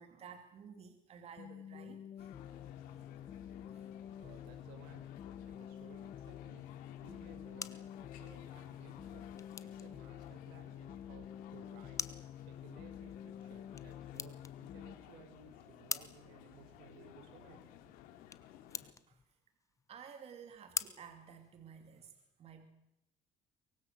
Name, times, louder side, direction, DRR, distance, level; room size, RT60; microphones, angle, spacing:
voice 1, 0.0-2.3 2.9-3.0 3.7-3.9 19.1-19.2 19.9-22.7, right 7 dB, 45° right, 6 dB, 2.6 m, -54 dB
sound 1, 1.4-15.0, left 9 dB, 45° left, 1.1 m, -49 dB
sound 2, 2.2-18.9, left 11 dB, 85° left, 3.1 m, -57 dB
voice 2, 4.1-17.8, right 6 dB, 85° right, 4 dB, 6.9 m, -60 dB
sound 3, 7.3-22.1, left 5 dB, 20° left, 1.1 m, -48 dB
23.5 x 22.5 x 7.6 m, 0.83 s
cardioid pair, 120°, 14 cm